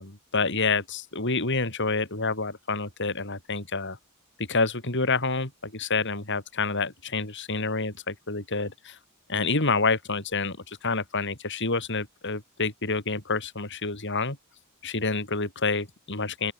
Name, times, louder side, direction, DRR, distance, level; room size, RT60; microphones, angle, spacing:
voice 1, 0.0-4.0 4.4-9.0 9.3-14.4 14.8-16.5, left 3 dB, 55° left, 5.8 m, -28 dB
open air
head